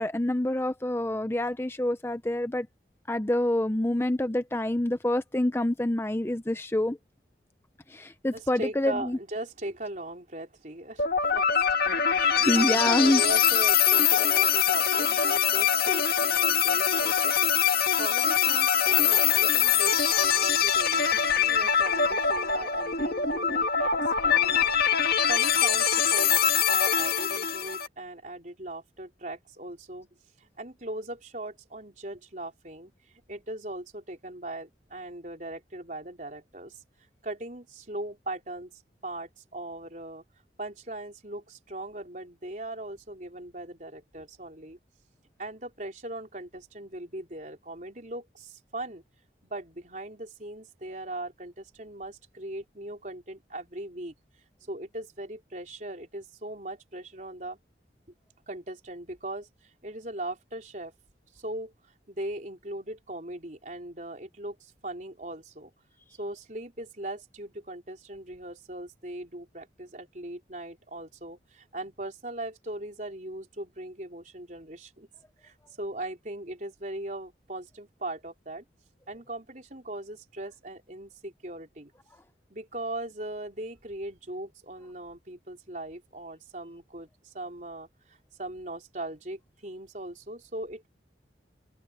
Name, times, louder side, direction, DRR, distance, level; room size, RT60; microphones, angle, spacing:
voice 1, 0.0-2.7 3.1-7.0 7.9-9.2 12.4-13.2, left 1 dB, 15° left, 0.5 m, -26 dB
voice 2, 8.3-11.5 12.1-23.9 24.2-24.7 25.0-30.1 30.4-32.9 33.3-36.8 37.2-38.7 39.0-40.2 40.6-44.8 45.4-49.0 49.4-54.1 54.7-57.6 58.5-60.9 61.3-65.7 66.2-75.1 75.4-78.6 79.1-81.9 82.5-90.9, right 1 dB, 45° right, 4.2 m, -39 dB
sound 1, 11.0-27.9, left 8 dB, 55° left, 1.9 m, -23 dB
open air
head